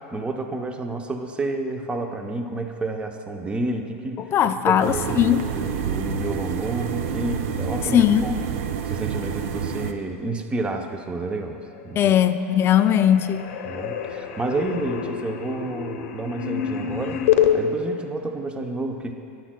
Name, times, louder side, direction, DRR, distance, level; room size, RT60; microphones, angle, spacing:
voice 1, 0.1-4.2 4.6-5.3 5.5-8.3 8.8-12.1 13.7-17.2 17.5-19.1, right 2 dB, 15° right, 5 dB, 0.6 m, -30 dB
voice 2, 4.3-5.5 7.8-8.4 12.0-13.5, left 10 dB, 30° left, 10 dB, 0.4 m, -19 dB
sound 1, 4.8-9.9, right 7 dB, 65° right, 0.5 m, -28 dB
sound 2, 11.6-12.1 12.4-17.5, left 10 dB, 75° left, 0.7 m, -27 dB
13.5 x 10.0 x 2.2 m, 2.6 s
hypercardioid pair, 115°, 8 cm